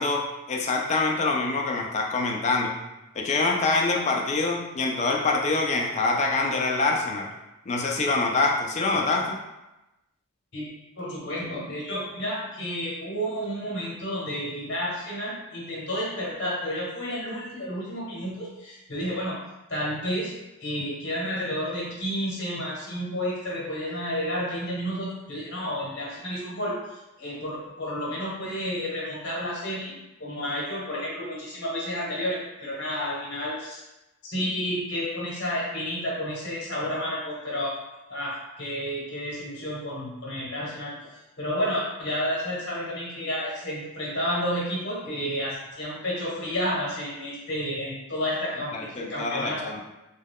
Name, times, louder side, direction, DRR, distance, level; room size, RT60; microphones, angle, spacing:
voice 1, 0.0-2.7 3.2-7.3 7.7-9.2 48.7-49.8, left 3 dB, 30° left, 0 dB, 0.3 m, -25 dB
voice 2, 11.0-19.4 19.7-20.3 20.6-33.8 34.2-37.8 38.1-40.9 41.4-49.6, equal, 50° left, -5 dB, 0.8 m, -31 dB
2.3 x 2.2 x 3.4 m, 0.98 s
head